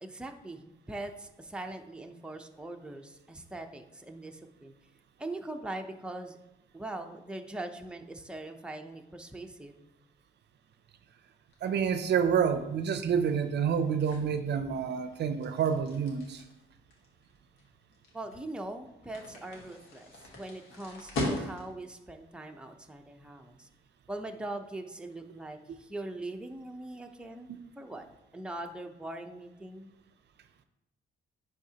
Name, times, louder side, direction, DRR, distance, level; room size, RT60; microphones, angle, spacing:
voice 1, 0.0-4.7 5.2-6.4 6.7-9.9 18.1-23.7 24.1-27.5 27.8-28.1 28.3-29.9, right 2 dB, 5° right, 4 dB, 0.6 m, -41 dB
sound 1, 11.5-21.9, left 1 dB, 90° left, 1.5 m, -41 dB
voice 2, 11.6-16.4 27.5-27.6, right 7 dB, 60° right, 9 dB, 0.5 m, -28 dB
10.5 x 3.6 x 2.9 m, 0.93 s
cardioid pair, 90°, 20 cm